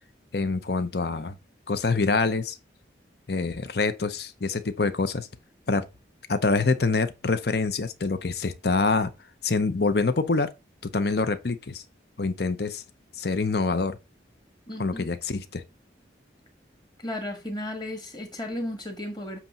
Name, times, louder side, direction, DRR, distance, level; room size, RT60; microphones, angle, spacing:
voice 1, 0.3-1.4 1.7-2.6 3.3-5.3 5.7-5.8 6.3-9.1 9.4-10.5 10.8-11.8 12.2-12.8 13.2-14.0 14.8-15.6, left 3 dB, 55° left, 0.7 m, -25 dB
voice 2, 14.7-15.1 17.0-19.4, left 1 dB, 20° left, 1.5 m, -34 dB
8.1 x 3.0 x 5.6 m
head